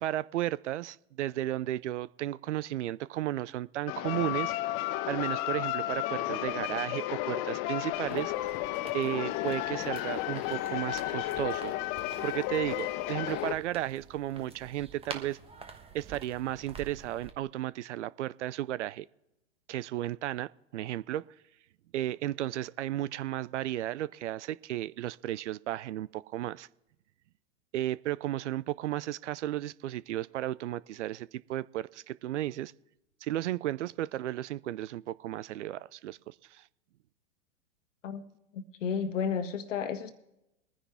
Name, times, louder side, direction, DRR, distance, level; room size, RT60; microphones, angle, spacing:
voice 1, 0.0-4.5 5.1-8.3 8.9-11.7 12.2-15.4 15.9-19.1 19.7-21.3 21.9-26.7 27.7-32.7 33.2-36.6, right 13 dB, 65° right, 20 dB, 0.5 m, -34 dB
sound 1, 3.9-13.5, left 15 dB, 30° left, 0.5 m, -33 dB
sound 2, 8.0-17.3, right 5 dB, 15° right, 1.2 m, -49 dB
voice 2, 38.5-40.1, left 6 dB, 70° left, 10 dB, 1.5 m, -32 dB
21.5 x 9.9 x 3.5 m, 0.88 s
hypercardioid pair, 105°, 39 cm